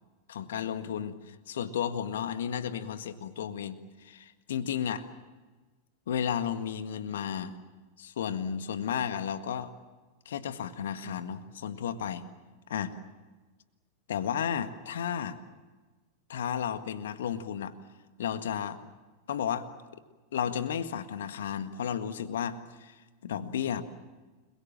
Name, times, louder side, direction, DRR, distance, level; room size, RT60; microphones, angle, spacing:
voice 1, 0.3-5.1 6.1-7.6 8.0-9.7 10.2-12.2 12.7-12.9 14.1-15.4 16.3-17.7 18.2-18.8 19.3-19.7 20.3-23.8, left 8 dB, 60° left, 11 dB, 1.7 m, -33 dB
29.5 x 22.0 x 7.5 m, 1.3 s
figure-of-eight pair, 90°, 0 cm